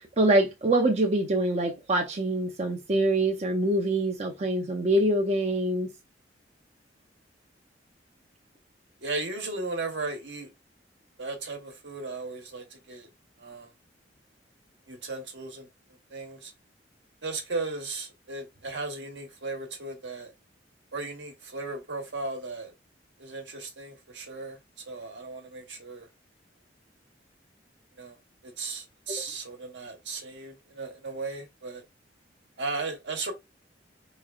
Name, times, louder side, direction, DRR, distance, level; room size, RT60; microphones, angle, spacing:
voice 1, 0.2-5.9, right 1 dB, 35° right, 0.6 m, -25 dB
voice 2, 9.0-10.5 11.2-13.1 13.4-13.7 14.9-15.7 16.1-16.5 17.2-20.3 20.9-22.7 23.2-26.1 28.0-28.2 28.4-31.8 32.6-33.3, right 3 dB, 70° right, 1.1 m, -36 dB
4.6 x 3.1 x 2.3 m
head